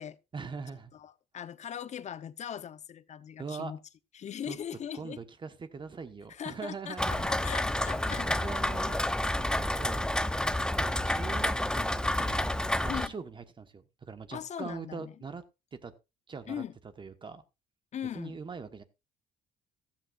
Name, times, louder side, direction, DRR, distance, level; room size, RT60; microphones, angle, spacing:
voice 1, 0.3-0.9 3.4-3.7 4.5-4.6 4.9-7.7 8.2-9.0 9.5-10.1 10.7-15.4 15.7-15.9 16.3-16.6 17.0-17.4 18.1-18.8, right 5 dB, 30° right, 1.2 m, -42 dB
voice 2, 0.9-3.8 4.1-5.2 6.3-8.4 12.9-13.1 14.3-15.1 16.5-16.7 17.9-18.4, left 9 dB, 45° left, 0.8 m, -40 dB
Rain, 7.0-13.1, left 1 dB, 5° left, 0.6 m, -29 dB
sound 1, 7.1-13.3, right 6 dB, 50° right, 4.6 m, -57 dB
15.0 x 13.0 x 2.4 m
cardioid pair, 110°, 17 cm